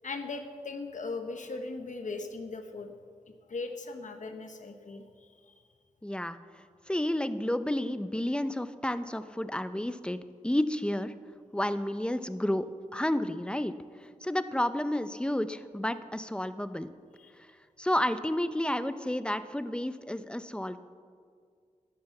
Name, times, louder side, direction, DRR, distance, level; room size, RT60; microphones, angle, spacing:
voice 1, 0.0-2.9 3.5-5.6 17.2-17.3, left 3 dB, 75° left, 6 dB, 1.0 m, -39 dB
voice 2, 6.0-6.4 6.9-11.1 11.5-13.7 14.0-16.9 17.8-20.8, left 1 dB, 5° left, 12 dB, 0.6 m, -31 dB
11.5 x 9.9 x 7.1 m, 2.1 s
wide cardioid pair, 70°, 13 cm